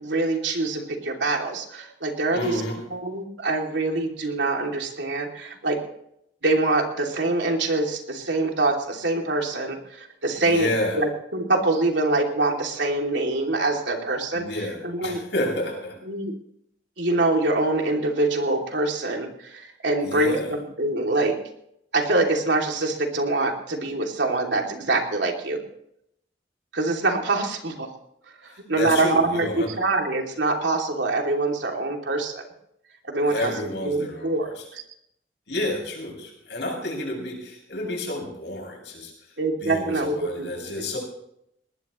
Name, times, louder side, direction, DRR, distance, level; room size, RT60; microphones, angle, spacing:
voice 1, 0.0-2.6 2.9-5.8 6.4-10.7 10.9-15.2 16.1-16.3 17.0-21.4 21.9-25.6 26.7-27.9 28.4-32.4 33.1-33.5 33.8-34.8 39.4-40.9, right 2 dB, 80° right, 2 dB, 2.9 m, -25 dB
voice 2, 2.3-2.8 10.4-11.0 14.3-16.0 20.0-20.5 28.8-29.7 33.2-34.5 35.5-39.1 39.6-41.0, left 1 dB, 75° left, -1 dB, 7.3 m, -30 dB
21.0 x 19.0 x 3.2 m, 0.75 s
head